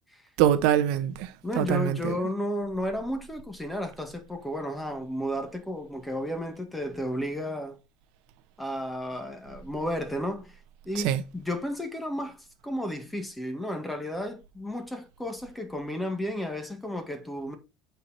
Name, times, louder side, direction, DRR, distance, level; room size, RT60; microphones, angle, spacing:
voice 1, 0.4-2.2 11.0-11.2, right 10 dB, 75° right, 0.8 m, -24 dB
voice 2, 1.4-7.8 8.6-17.6, left 1 dB, 5° left, 1.8 m, -33 dB
8.0 x 4.6 x 4.3 m
cardioid pair, 125°, 0 cm